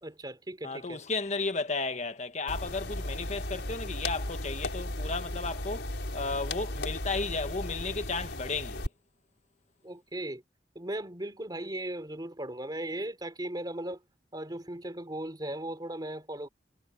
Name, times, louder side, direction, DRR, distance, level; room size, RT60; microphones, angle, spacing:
voice 1, 0.0-1.0 9.8-10.4 10.7-14.0 14.3-16.5, right 1 dB, 25° right, 3.4 m, -37 dB
voice 2, 0.6-8.9, left 3 dB, 40° left, 1.4 m, -34 dB
sound 1, 2.5-8.9, left 1 dB, 80° left, 6.2 m, -36 dB
head